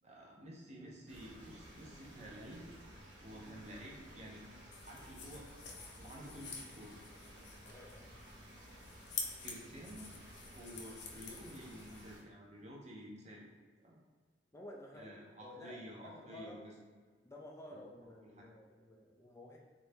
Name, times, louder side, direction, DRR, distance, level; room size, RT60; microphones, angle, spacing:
voice 1, 0.0-2.7 3.2-4.5 4.9-5.5 5.9-6.9 9.4-10.2 10.4-13.5 13.8-14.0 14.9-16.7 17.7-17.8 18.2-18.5, equal, 40° right, -3 dB, 0.8 m, -51 dB
sound 1, 1.1-12.2, equal, 90° right, 0.9 m, -55 dB
sound 2, 4.7-12.2, left 5 dB, 65° left, 0.5 m, -49 dB
voice 2, 7.7-8.1 14.5-15.1 15.4-16.6 17.2-19.6, left 1 dB, 15° left, -1 dB, 0.4 m, -52 dB
3.2 x 2.6 x 3.4 m, 1.5 s
head